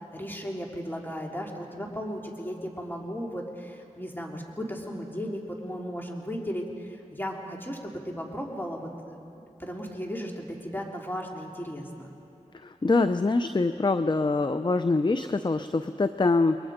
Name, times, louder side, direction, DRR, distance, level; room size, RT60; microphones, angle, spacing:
voice 1, 0.1-9.2 9.6-12.1, equal, 15° left, 0 dB, 3.8 m, -35 dB
voice 2, 12.6-16.6, left 3 dB, 35° left, 10 dB, 0.7 m, -24 dB
29.5 x 22.0 x 5.2 m, 2.6 s
cardioid pair, 40°, 14 cm